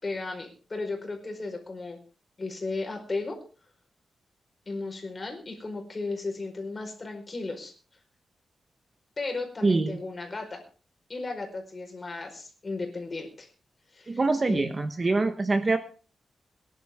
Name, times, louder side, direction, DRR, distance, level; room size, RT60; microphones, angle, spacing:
voice 1, 0.0-2.0 2.4-3.4 4.7-7.7 9.2-10.6 11.1-13.5 13.9-14.2 14.5-14.6, left 3 dB, 30° left, 3 dB, 4.6 m, -35 dB
voice 2, 9.6-10.0 14.1-15.8, right 3 dB, 30° right, 8 dB, 1.0 m, -24 dB
22.0 x 11.0 x 3.6 m, 0.37 s
wide cardioid pair, 155°, 0 cm